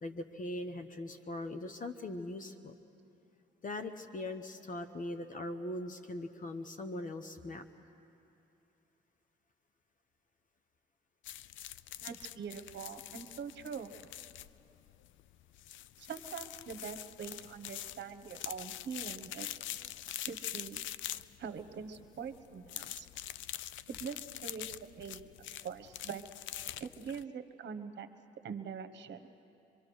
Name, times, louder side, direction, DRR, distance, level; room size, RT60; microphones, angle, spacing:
voice 1, 0.0-2.7 3.6-7.6, left 2 dB, 40° left, 6 dB, 1.1 m, -40 dB
sound 1, 11.2-27.2, left 12 dB, 75° left, 0.5 m, -44 dB
voice 2, 12.0-13.9 16.0-19.5 20.2-20.8 21.4-23.1 23.9-24.7 25.0-25.3 25.6-26.2 26.8-28.1 28.4-29.3, right 6 dB, 60° right, 10 dB, 1.3 m, -43 dB
24.5 x 23.5 x 6.4 m, 2.7 s
cardioid pair, 90°, 20 cm